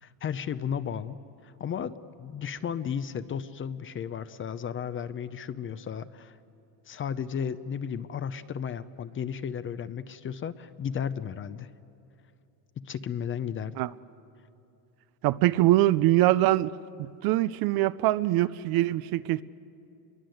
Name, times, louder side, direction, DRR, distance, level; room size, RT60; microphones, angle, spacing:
voice 1, 0.0-1.2 1.4-6.4 6.9-11.7 12.8-13.8, left 8 dB, 25° left, 0.6 m, -34 dB
voice 2, 15.2-16.7 17.2-19.4, right 16 dB, 50° right, 0.6 m, -23 dB
28.5 x 22.0 x 7.9 m
cardioid pair, 130°, 46 cm